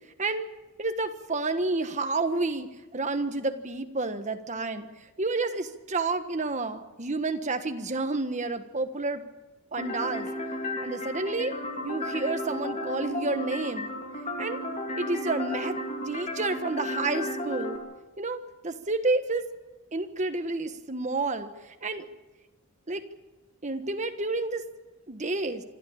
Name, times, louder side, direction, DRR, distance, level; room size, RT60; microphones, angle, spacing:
voice 1, 0.8-4.9 5.2-9.2 9.7-10.3 10.8-11.5 11.8-13.9 14.4-14.6 15.0-15.8 16.0-17.8 18.2-19.4 19.9-21.5 21.8-22.0 22.9-23.0 23.6-24.6 25.1-25.6, right 3 dB, 35° right, 8 dB, 1.4 m, -30 dB
sound 1, 9.8-17.8, left 1 dB, 35° left, 3.2 m, -34 dB
26.5 x 12.5 x 8.7 m, 1.1 s
head